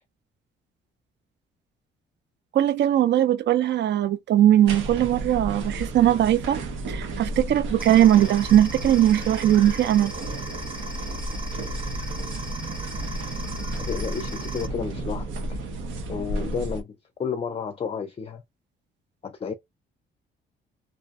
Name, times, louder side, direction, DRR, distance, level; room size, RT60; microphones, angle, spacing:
voice 1, 2.5-6.6 6.9-10.1, right 12 dB, 60° right, 0.4 m, -20 dB
sound 1, 4.6-16.8, right 2 dB, 80° right, 0.8 m, -32 dB
sound 2, 7.8-14.7, right 1 dB, 25° right, 1.0 m, -39 dB
voice 2, 13.8-15.6 16.1-18.4 19.2-19.5, left 6 dB, 30° left, 0.4 m, -32 dB
2.5 x 2.2 x 2.5 m
cardioid pair, 90°, 20 cm